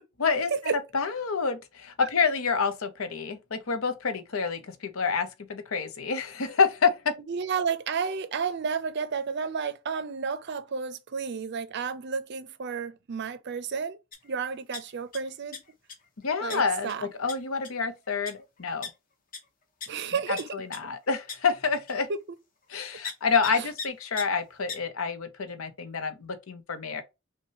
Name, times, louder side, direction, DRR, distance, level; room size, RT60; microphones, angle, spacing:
voice 1, 0.2-7.2 16.2-18.9 20.1-22.1 22.7-27.0, left 5 dB, 80° left, 0.8 m, -28 dB
voice 2, 7.3-14.0 14.2-15.6 16.4-17.1 19.9-20.5 22.1-22.2 23.6-23.7, right 6 dB, 55° right, 0.5 m, -31 dB
sound 1, 14.1-14.3 14.5-15.2 15.5-15.9 16.5-16.6 16.9-17.0 17.3-17.4 17.6-17.8 18.3-18.4 18.8-18.9 19.3-19.4 19.8-19.9 20.4-20.5 20.7-20.8 21.3-21.4 21.9-22.0 23.0-23.1 23.4-23.5 23.8-23.9 24.2-24.3 24.7-24.8, left 6 dB, 40° left, 1.0 m, -36 dB
5.8 x 2.2 x 2.8 m
head